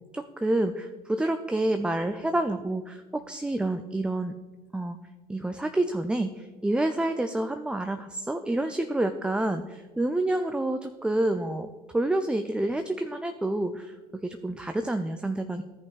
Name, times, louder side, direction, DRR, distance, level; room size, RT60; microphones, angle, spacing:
voice 1, 0.1-4.4 4.7-5.0 5.3-15.6, right 1 dB, 5° right, 8 dB, 0.4 m, -28 dB
14.0 x 5.3 x 3.2 m, 1.2 s
hypercardioid pair, 75°, 20 cm